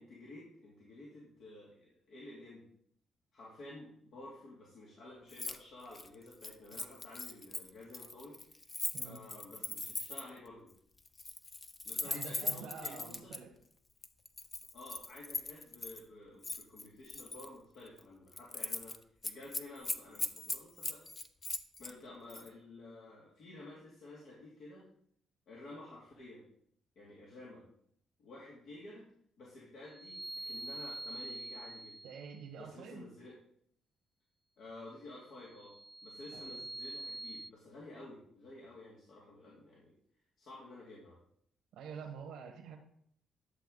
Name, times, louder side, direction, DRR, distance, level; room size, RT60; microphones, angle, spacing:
voice 1, 0.0-2.6 3.3-8.3 9.0-10.7 11.8-13.3 14.7-19.0 19.2-21.0 21.8-24.8 25.5-26.4 27.0-27.6 28.2-29.1 29.4-32.0 32.6-33.4 34.6-35.8 36.0-39.9 40.4-41.2, left 2 dB, 70° left, -5 dB, 2.7 m, -52 dB
Keys jangling, 5.3-5.6 5.9-10.4 11.1-13.4 14.0-16.0 16.4-17.5 17.9-18.0 18.3-19.0 19.2-21.9 22.3-22.5, left 3 dB, 30° left, 0.7 m, -40 dB
voice 2, 12.0-13.5 32.0-33.1 36.3-36.7 41.7-42.8, right 6 dB, 85° right, -2 dB, 1.4 m, -47 dB
sound 1, 29.9-32.4 35.4-37.5, right 2 dB, 10° right, 0.4 m, -45 dB
11.5 x 6.9 x 4.0 m, 0.67 s
cardioid pair, 90°, 0 cm